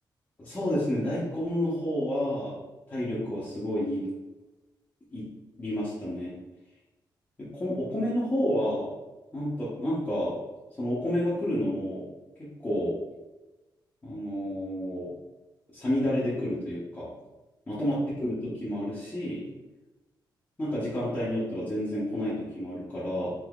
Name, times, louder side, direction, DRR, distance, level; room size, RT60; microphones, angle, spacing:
voice 1, 0.4-2.6 2.9-4.1 5.1-5.2 5.6-6.4 7.4-8.9 9.3-10.4 10.8-12.0 12.4-12.9 14.0-15.1 15.7-17.1 17.7-19.4 20.6-23.3, equal, 20° left, -11 dB, 0.7 m, -30 dB
3.5 x 2.7 x 2.3 m, 1.1 s
wide cardioid pair, 170°, 8 cm